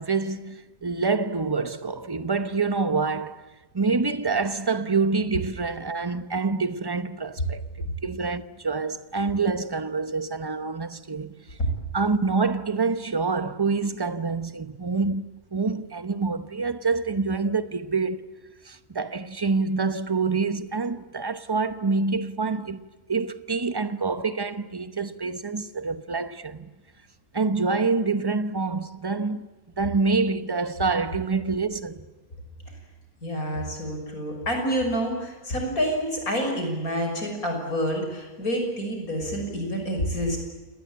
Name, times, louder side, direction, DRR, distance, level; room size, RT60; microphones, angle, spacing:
voice 1, 0.0-3.4 3.7-11.3 11.9-18.2 18.6-22.8 23.1-26.7 27.3-29.5 29.8-32.1, right 4 dB, 20° right, 0.8 m, -26 dB
voice 2, 33.2-40.4, equal, 70° left, 6.6 m, -28 dB
29.0 x 19.5 x 8.7 m
omnidirectional pair, 1.6 m